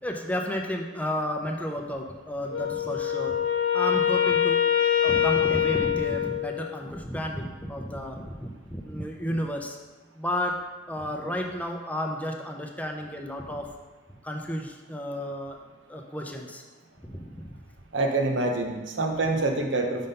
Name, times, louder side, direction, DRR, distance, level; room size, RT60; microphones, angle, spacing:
voice 1, 0.0-3.4 3.7-4.6 5.0-9.8 10.2-10.5 10.9-13.7 14.2-15.6 15.9-16.6 17.0-17.5, equal, 10° left, 2 dB, 0.5 m, -32 dB
Wind instrument woodwind instrument, 2.5-6.9, left 9 dB, 85° left, 0.5 m, -24 dB
voice 2, 17.9-20.1, right 2 dB, 80° right, 2 dB, 0.8 m, -26 dB
5.5 x 3.7 x 5.3 m, 1.2 s
head